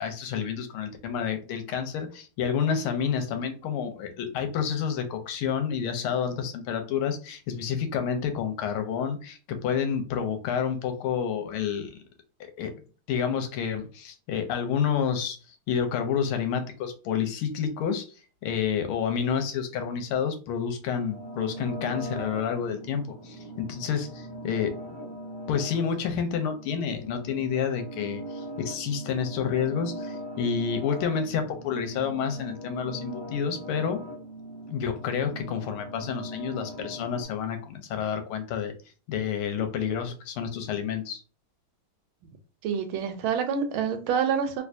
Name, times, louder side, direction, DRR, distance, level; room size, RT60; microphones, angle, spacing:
voice 1, 0.0-11.9 12.4-12.7 13.1-18.0 18.4-24.7 25.5-34.0 34.7-38.7 39.1-41.2, left 7 dB, 90° left, 1.5 m, -29 dB
sound 1, 21.1-37.2, right 1 dB, 35° right, 0.4 m, -40 dB
voice 2, 42.6-44.6, right 7 dB, 80° right, 1.4 m, -27 dB
3.3 x 2.9 x 2.5 m
omnidirectional pair, 2.4 m